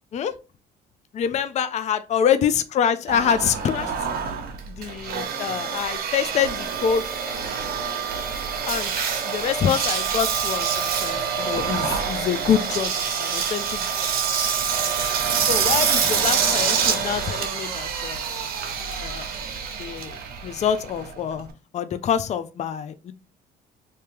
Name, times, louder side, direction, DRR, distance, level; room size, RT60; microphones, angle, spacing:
voice 1, 1.1-3.9 4.8-7.0 8.6-8.9 9.2-14.1 15.5-18.2 19.0-19.3 19.8-20.2 20.4-21.5 21.7-23.1, left 8 dB, 40° left, 0.5 m, -25 dB
Engine, 3.1-21.5, right 7 dB, 65° right, 0.9 m, -26 dB
3.3 x 2.8 x 3.4 m
cardioid pair, 110°, 17 cm